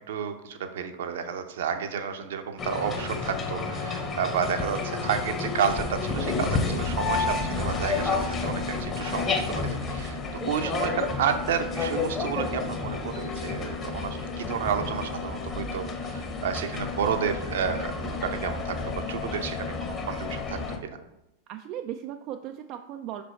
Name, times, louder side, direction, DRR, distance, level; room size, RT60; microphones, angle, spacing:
voice 1, 0.0-10.2 10.4-21.0, right 7 dB, 60° right, 7 dB, 0.7 m, -31 dB
sound 1, 2.6-20.8, left 4 dB, 25° left, 1.0 m, -31 dB
voice 2, 10.3-10.8 21.5-23.2, right 11 dB, 40° right, 6 dB, 0.3 m, -37 dB
6.1 x 5.2 x 4.3 m, 0.88 s
figure-of-eight pair, 90°, 0 cm